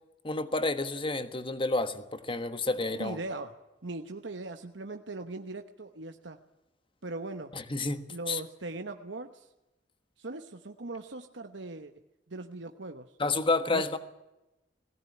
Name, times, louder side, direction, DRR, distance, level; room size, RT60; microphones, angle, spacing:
voice 1, 0.2-3.2 7.5-8.4 13.2-14.0, left 3 dB, 30° left, 10 dB, 1.4 m, -30 dB
voice 2, 3.0-3.6 3.8-6.4 7.0-7.5 8.1-9.5 10.2-11.9 12.3-13.1 13.7-13.8, right 2 dB, 70° right, 6 dB, 1.2 m, -39 dB
20.0 x 17.5 x 9.7 m, 0.98 s
head